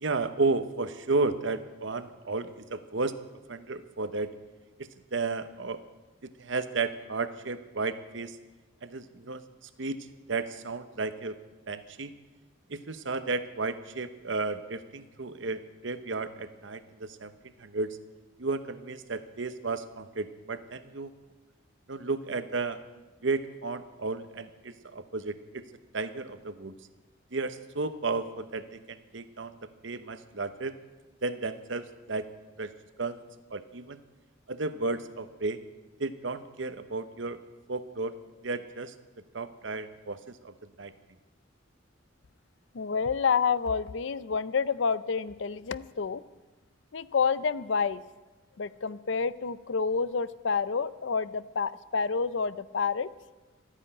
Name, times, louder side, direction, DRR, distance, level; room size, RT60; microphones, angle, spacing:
voice 1, 0.0-3.1 3.5-4.3 5.1-5.8 6.2-8.4 8.8-9.4 9.8-10.0 10.3-11.3 11.7-12.1 12.7-17.3 17.6-18.0 18.4-21.1 21.9-22.8 23.2-25.6 25.9-26.7 27.3-29.6 29.8-30.7 31.2-32.3 32.6-32.7 33.0-33.2 33.5-34.0 34.5-35.6 36.0-37.4 37.7-38.1 38.4-38.9 39.3-40.9, right 3 dB, 65° right, 11 dB, 1.0 m, -33 dB
voice 2, 42.7-46.2 46.9-48.0 48.6-53.1, left 5 dB, 65° left, 16 dB, 0.5 m, -28 dB
13.5 x 10.0 x 9.0 m, 1.2 s
head